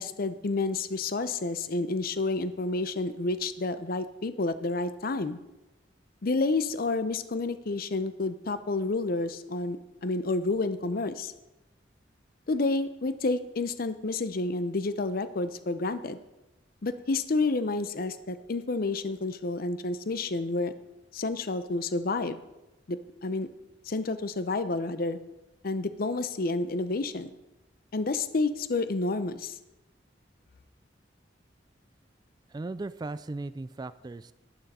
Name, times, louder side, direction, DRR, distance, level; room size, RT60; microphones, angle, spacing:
voice 1, 0.0-5.4 6.2-11.3 12.5-16.2 16.8-20.7 21.1-22.4 22.9-23.5 23.9-25.2 25.6-27.3 27.9-29.6, left 3 dB, 55° left, 12 dB, 0.6 m, -30 dB
voice 2, 32.5-34.3, right 2 dB, 20° right, 15 dB, 0.3 m, -37 dB
12.0 x 11.5 x 4.2 m, 0.97 s
head